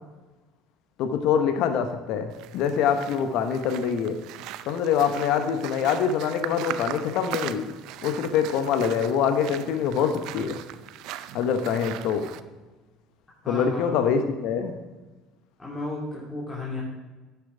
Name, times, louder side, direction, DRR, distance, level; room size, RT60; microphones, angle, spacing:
voice 1, 1.0-4.2 4.6-7.6 8.0-10.6 11.3-12.3 13.5-14.7, left 7 dB, 65° left, 7 dB, 0.9 m, -24 dB
sound 1, 2.3-12.4, right 12 dB, 65° right, 0.5 m, -39 dB
voice 2, 13.4-14.1 15.6-16.8, left 2 dB, 20° left, -5 dB, 2.9 m, -33 dB
9.9 x 7.0 x 4.9 m, 1.2 s
hypercardioid pair, 65°, 0 cm